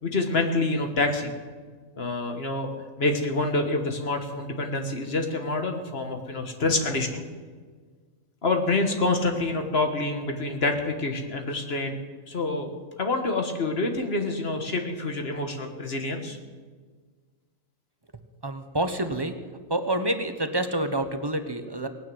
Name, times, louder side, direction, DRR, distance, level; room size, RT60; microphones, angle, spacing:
voice 1, 0.0-1.3 2.0-2.7 3.0-7.2 8.4-11.9 12.3-12.7 13.0-16.4, left 2 dB, 50° left, 5 dB, 1.7 m, -27 dB
voice 2, 18.4-19.3 19.7-21.9, right 1 dB, 20° right, 8 dB, 0.9 m, -27 dB
18.5 x 9.4 x 7.8 m, 1.5 s
omnidirectional pair, 1.4 m